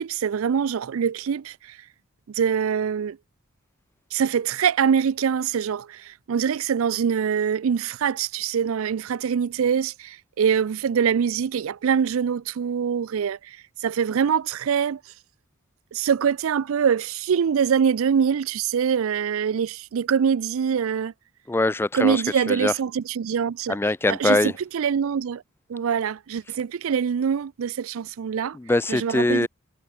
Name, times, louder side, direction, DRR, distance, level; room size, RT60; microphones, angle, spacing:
voice 1, 0.0-1.8 2.3-3.2 4.1-13.6 13.8-15.0 15.9-21.1 21.9-23.8 24.1-25.4 25.7-28.6 28.9-29.5, right 7 dB, 70° right, 0.4 m, -24 dB
voice 2, 21.5-22.8 23.7-24.6 28.5-29.5, left 2 dB, 10° left, 0.3 m, -23 dB
head